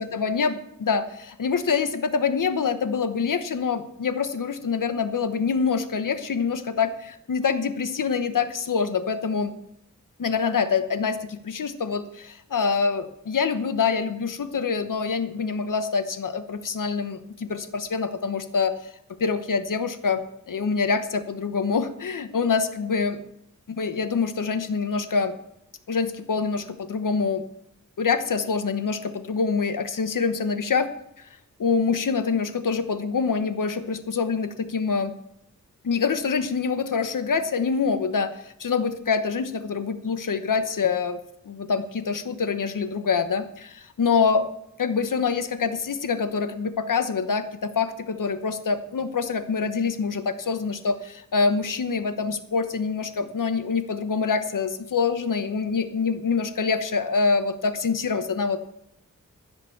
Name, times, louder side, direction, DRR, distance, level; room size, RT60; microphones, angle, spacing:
voice 1, 0.0-9.5 10.2-18.9 19.2-20.2 20.5-23.2 23.7-25.3 25.9-27.4 28.0-30.9 31.2-31.3 31.6-35.1 35.8-41.2 41.4-44.4 44.8-58.7, left 5 dB, 75° left, 10 dB, 1.1 m, -25 dB
15.5 x 6.0 x 7.1 m, 0.77 s
wide cardioid pair, 110°, 32 cm